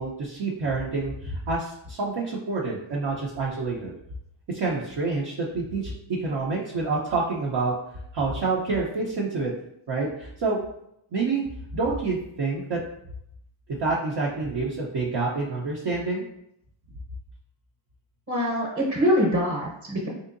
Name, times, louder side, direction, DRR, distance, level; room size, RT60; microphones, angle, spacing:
voice 1, 0.0-3.9 4.5-7.7 8.1-9.5 9.9-10.6 11.1-11.4 11.7-12.8 13.7-16.2, right 3 dB, 55° right, -4 dB, 0.7 m, -27 dB
voice 2, 18.3-20.1, equal, 30° right, -2 dB, 0.9 m, -24 dB
3.6 x 2.7 x 2.5 m, 0.76 s
cardioid pair, 55°, 50 cm